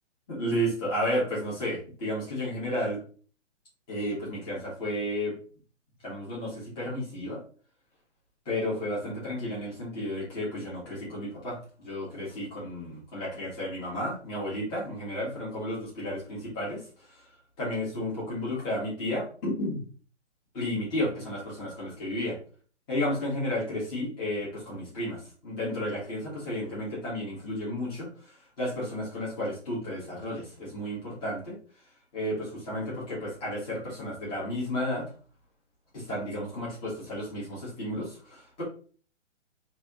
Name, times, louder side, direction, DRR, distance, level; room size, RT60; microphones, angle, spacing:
voice 1, 0.3-3.0 3.9-5.4 6.0-7.4 8.4-16.8 17.6-19.8 20.5-22.4 22.9-28.1 28.6-31.6 32.1-35.1 35.9-38.6, left 1 dB, 15° left, -7 dB, 1.3 m, -32 dB
3.4 x 2.9 x 3.6 m, 0.41 s
hypercardioid pair, 170°, 35 cm